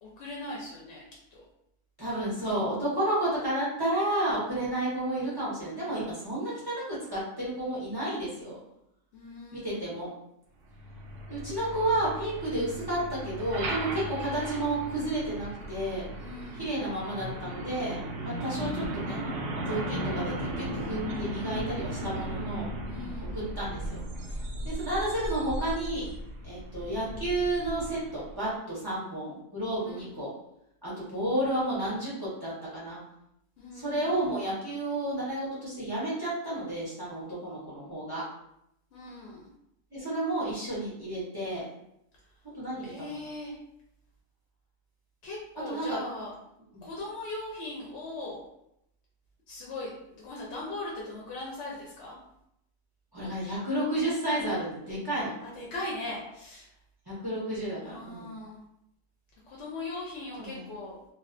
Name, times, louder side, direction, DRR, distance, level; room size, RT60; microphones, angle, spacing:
voice 1, 0.0-1.0 1.3-1.4 9.1-9.9 16.2-16.7 22.9-23.4 29.8-30.1 33.6-34.2 38.9-39.5 42.8-43.6 45.2-46.3 46.8-48.4 49.5-52.2 55.4-56.7 57.8-58.7 59.5-61.0, left 2 dB, 65° left, -3 dB, 0.7 m, -39 dB
voice 2, 2.0-8.6 9.5-10.1 11.3-16.1 16.6-19.2 19.7-22.7 23.3-24.0 24.6-26.1 26.4-30.3 30.8-33.0 33.7-38.2 39.9-41.6 42.5-42.9 45.7-46.0 46.7-46.9 53.1-55.3 57.1-58.4 60.4-60.7, right 1 dB, 30° right, -8 dB, 0.4 m, -31 dB
Truck, 10.7-28.4, right 1 dB, 90° right, 0.5 m, -36 dB
2.3 x 2.3 x 2.4 m, 0.79 s
omnidirectional pair, 1.6 m